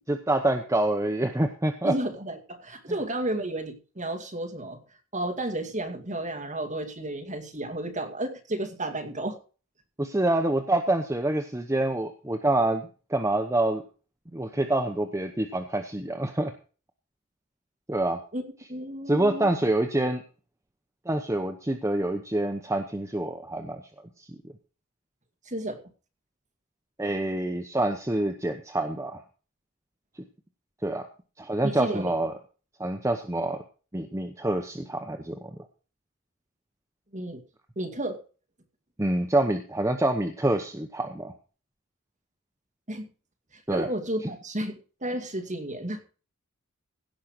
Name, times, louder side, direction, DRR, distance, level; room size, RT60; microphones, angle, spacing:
voice 1, 0.1-1.9 10.0-13.8 14.3-16.5 17.9-18.2 19.1-20.2 21.1-23.8 24.2-24.5 27.0-29.2 30.8-31.1 31.4-32.3 32.8-33.6 33.9-35.5 39.0-41.3 43.7-43.9, right 1 dB, 15° right, 5 dB, 0.9 m, -26 dB
voice 2, 1.8-4.8 5.1-9.4 18.3-18.4 18.7-19.5 25.5-25.8 31.6-32.1 37.1-37.4 37.8-38.2 42.9-43.1 43.7-46.0, right 1 dB, 35° right, 4 dB, 2.3 m, -32 dB
16.5 x 5.7 x 6.5 m, 0.37 s
head